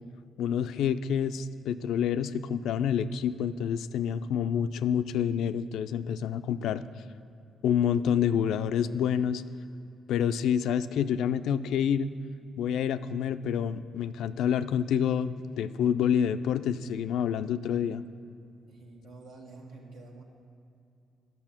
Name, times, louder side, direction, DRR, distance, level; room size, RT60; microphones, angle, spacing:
voice 1, 0.4-6.8 7.6-9.4 10.1-12.1 12.6-18.0, left 8 dB, 80° left, 13 dB, 0.3 m, -28 dB
voice 2, 18.7-20.2, right 3 dB, 80° right, 0 dB, 1.5 m, -48 dB
9.7 x 7.1 x 5.8 m, 2.6 s
cardioid pair, 90°, 0 cm